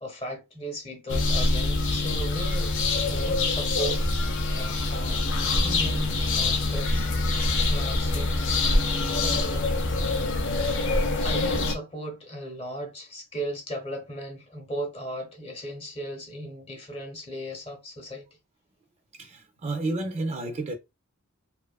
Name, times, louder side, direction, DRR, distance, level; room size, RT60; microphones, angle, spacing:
voice 1, 0.0-2.7 3.1-8.7 9.2-9.7 11.2-18.3, right 1 dB, 25° left, 0.7 m, -37 dB
sound 1, 1.1-11.8, left 2 dB, 55° left, 0.5 m, -25 dB
voice 2, 19.1-20.7, right 2 dB, 30° right, 0.4 m, -31 dB
2.6 x 2.3 x 2.3 m
head